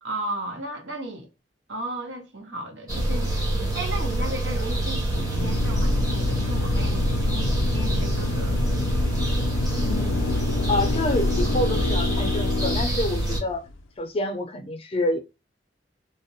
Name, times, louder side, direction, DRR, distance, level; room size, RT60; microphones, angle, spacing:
voice 1, 0.0-1.3 1.7-3.3 3.7-8.6, right 2 dB, 80° right, 0.8 m, -34 dB
sound 1, 2.9-13.4, right 1 dB, 20° right, 0.8 m, -26 dB
Drill, 5.1-13.7, left 5 dB, 90° left, 0.4 m, -29 dB
voice 2, 9.8-10.2 10.7-13.7 14.0-15.2, left 2 dB, 30° left, 0.4 m, -27 dB
2.4 x 2.0 x 2.7 m
head